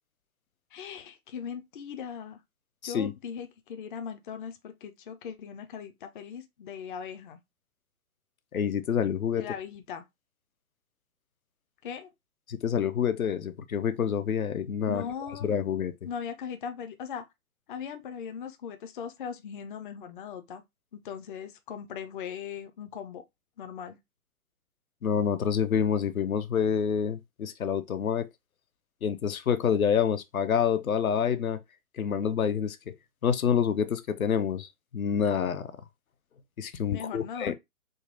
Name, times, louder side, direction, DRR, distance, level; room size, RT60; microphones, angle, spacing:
voice 1, 0.7-2.4 2.8-7.4 9.4-10.0 11.8-12.1 14.9-15.5 16.0-17.3 17.7-20.6 20.9-23.2 23.6-24.0 36.9-37.5, left 7 dB, 35° left, 0.6 m, -39 dB
voice 2, 8.5-9.5 12.5-15.0 15.4-15.9 25.0-28.3 29.0-31.6 32.0-32.9 33.2-35.7 36.6-37.5, left 7 dB, 70° left, 0.7 m, -27 dB
3.8 x 2.2 x 3.8 m
figure-of-eight pair, 120°, 43 cm